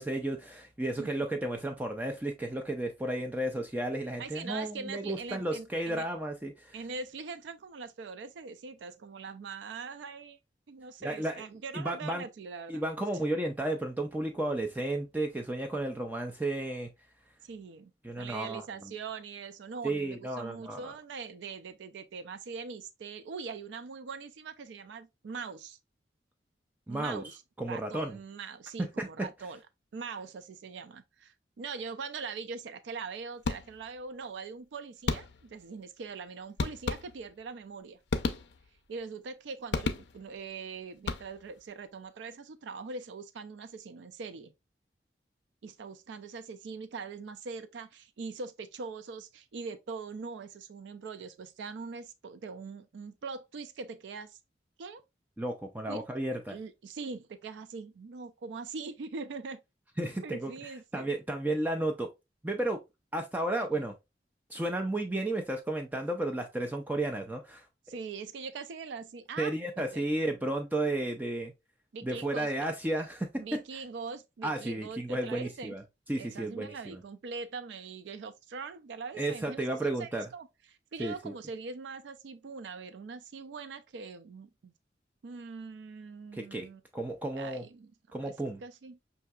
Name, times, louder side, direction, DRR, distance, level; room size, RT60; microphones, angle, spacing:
voice 1, 0.0-6.7 11.0-11.4 11.7-12.2 12.7-16.9 18.0-18.6 19.8-20.9 26.9-27.2 27.6-28.2 28.8-29.3 55.4-56.6 60.0-60.5 60.9-62.1 62.4-62.8 63.1-63.9 64.5-67.6 69.4-71.5 72.0-73.6 74.4-75.8 76.1-77.0 79.2-80.3 81.0-81.3 86.3-86.7 86.9-87.6 88.1-88.6, right 1 dB, 10° right, 0.3 m, -33 dB
voice 2, 4.2-6.1 6.7-10.4 10.7-12.8 13.1-13.2 17.4-17.9 18.2-25.8 26.9-27.4 27.7-29.6 29.9-38.0 38.9-44.5 45.6-54.4 54.8-55.0 55.9-56.0 56.5-59.6 60.2-61.1 63.6-63.8 67.9-70.0 71.9-72.7 73.4-75.7 76.1-84.7 85.2-86.8 87.4-88.3 88.6-89.0, right 4 dB, 80° right, 0.4 m, -42 dB
sound 1, 33.4-34.0 35.1-35.6 36.6-37.5 38.1-38.9 39.7-40.4 41.0-41.6, left 4 dB, 70° left, 0.4 m, -34 dB
5.6 x 2.6 x 2.3 m
head